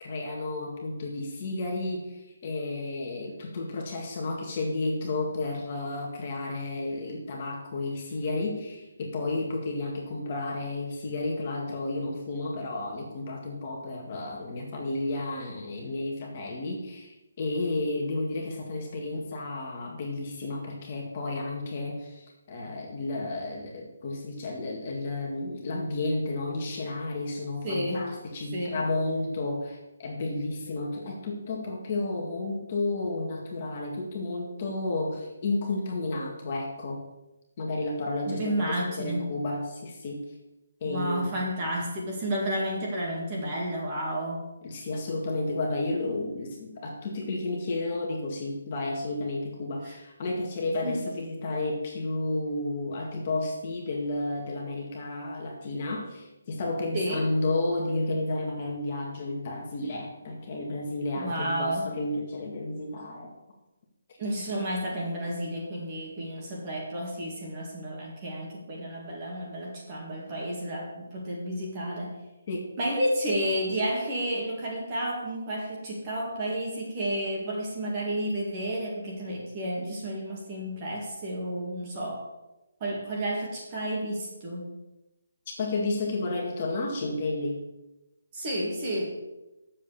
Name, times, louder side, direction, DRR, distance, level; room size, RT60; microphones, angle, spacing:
voice 1, 0.0-37.0 37.6-40.2 40.8-41.5 44.6-63.3 72.5-72.7 85.6-87.6, left 2 dB, 25° left, -1 dB, 1.9 m, -32 dB
voice 2, 27.6-28.1 28.5-28.8 38.3-39.3 40.8-44.5 49.8-49.9 50.8-51.0 56.9-57.3 61.1-61.9 64.2-72.2 72.8-82.2 82.8-84.8 88.3-89.2, right 1 dB, 20° right, -2 dB, 2.1 m, -31 dB
9.8 x 7.4 x 6.9 m, 0.99 s
hypercardioid pair, 180°, 0 cm